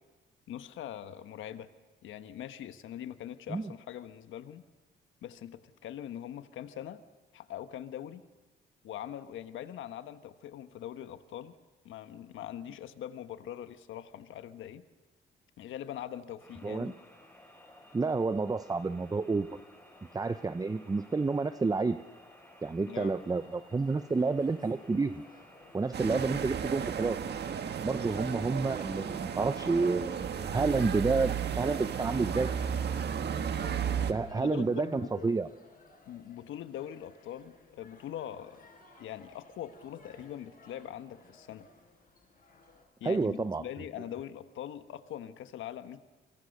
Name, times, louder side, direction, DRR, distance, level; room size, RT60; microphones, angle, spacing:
voice 1, 0.5-1.7 2.0-4.6 5.2-7.0 7.3-8.2 8.8-11.5 11.8-14.8 15.6-16.9 22.9-23.1 34.4-35.4 36.1-38.6 39.0-41.7 43.0-46.0, left 11 dB, 80° left, 10 dB, 1.3 m, -42 dB
sound 1, 16.4-33.1, left 1 dB, 10° left, 7.1 m, -56 dB
voice 2, 17.9-19.5 20.1-22.0 22.6-25.2 25.7-27.2 27.8-32.5 34.1-35.5 43.0-43.6, right 4 dB, 20° right, 11 dB, 0.7 m, -29 dB
sound 2, 23.0-42.8, left 3 dB, 45° left, 7.7 m, -60 dB
sound 3, 25.9-34.1, right 8 dB, 55° right, 1.7 m, -34 dB
29.5 x 23.5 x 6.6 m, 1.2 s
cardioid pair, 90°, 20 cm